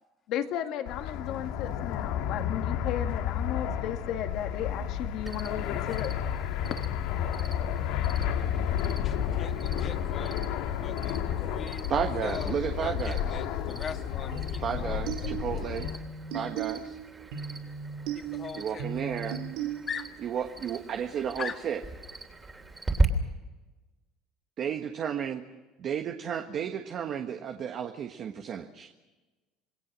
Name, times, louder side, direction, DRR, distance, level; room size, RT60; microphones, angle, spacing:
voice 1, 0.3-6.1, left 10 dB, 60° left, 6 dB, 2.2 m, -34 dB
Fixed-wing aircraft airplane, 0.9-16.0, left 9 dB, 75° left, 1.9 m, -31 dB
Cricket, 5.2-23.0, right 2 dB, 15° right, 3.2 m, -39 dB
voice 2, 9.0-10.4 10.8-15.3 18.1-19.2 19.9-20.1 21.4-21.6, left 7 dB, 30° left, 7 dB, 1.7 m, -41 dB
voice 3, 11.9-13.4 14.6-15.9 16.3-17.0 18.6-19.4 20.2-21.8 24.6-25.4 25.8-28.9, right 8 dB, 40° right, 5 dB, 1.5 m, -33 dB
sound 1, 14.3-20.3, right 7 dB, 90° right, 2.3 m, -37 dB
27.5 x 21.0 x 6.3 m, 1.2 s
cardioid pair, 140°, 0 cm